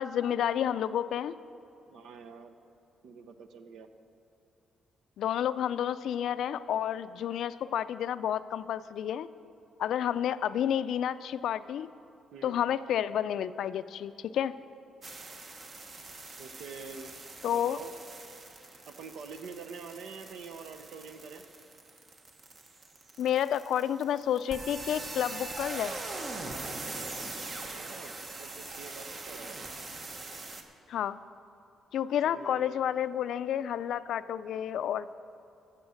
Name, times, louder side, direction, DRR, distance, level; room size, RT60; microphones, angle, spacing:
voice 1, 0.0-1.3 5.2-9.3 9.8-11.9 12.4-14.5 17.4-17.8 23.2-25.9 30.9-31.2 31.9-35.1, left 10 dB, 75° left, 14 dB, 0.3 m, -30 dB
voice 2, 1.9-2.5 3.0-3.9 12.3-12.6 16.4-17.1 17.4-17.9 18.9-21.4 27.4-29.6 32.2-32.8, right 5 dB, 80° right, 8 dB, 0.8 m, -46 dB
sound 1, 15.0-30.6, right 3 dB, 45° right, 1.1 m, -42 dB
13.5 x 7.0 x 6.4 m, 2.7 s
cardioid pair, 90°, 0 cm